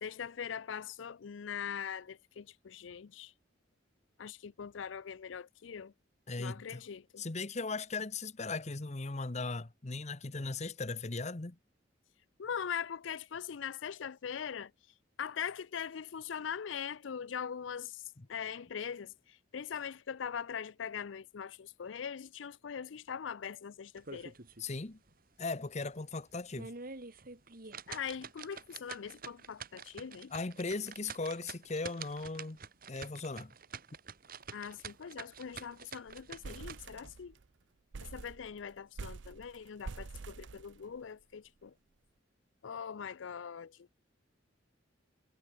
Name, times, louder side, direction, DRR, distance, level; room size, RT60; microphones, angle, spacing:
voice 1, 0.0-3.3 4.2-5.9 6.4-7.2 12.4-14.7 15.2-18.0 18.3-24.3 27.9-30.3 34.5-37.3 38.0-41.7 42.6-43.9, left 7 dB, 80° left, 0.5 m, -41 dB
voice 2, 6.3-6.8 7.2-11.6 18.2-18.3 24.6-25.0 25.4-26.7 30.3-32.6 32.9-33.5, left 3 dB, 35° left, 1.0 m, -38 dB
sound 1, 24.0-24.7 25.1-25.2 25.7-25.8 26.4-36.8, right 5 dB, 50° right, 2.4 m, -47 dB
sound 2, 34.4-34.6 34.9-35.0 35.3-35.7 36.1-37.5 37.9-41.2, right 4 dB, 75° right, 0.6 m, -47 dB
head